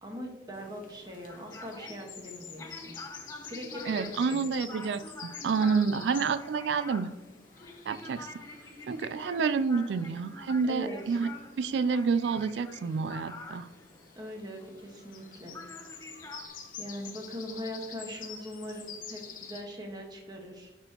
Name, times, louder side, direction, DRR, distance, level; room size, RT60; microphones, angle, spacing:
voice 1, 0.0-3.0 3.5-4.4 5.6-6.1 10.7-11.2 14.2-15.5 15.9-20.7, equal, 25° right, 1 dB, 1.3 m, -41 dB
sound 1, 0.5-19.6, left 6 dB, 50° left, 0.9 m, -48 dB
sound 2, 1.3-15.3 15.5-16.5, left 2 dB, 20° left, 0.7 m, -47 dB
voice 2, 3.9-7.1 7.9-8.3 8.9-11.3 11.6-13.7, right 5 dB, 70° right, 13 dB, 0.3 m, -29 dB
10.5 x 4.4 x 2.9 m, 1.0 s
head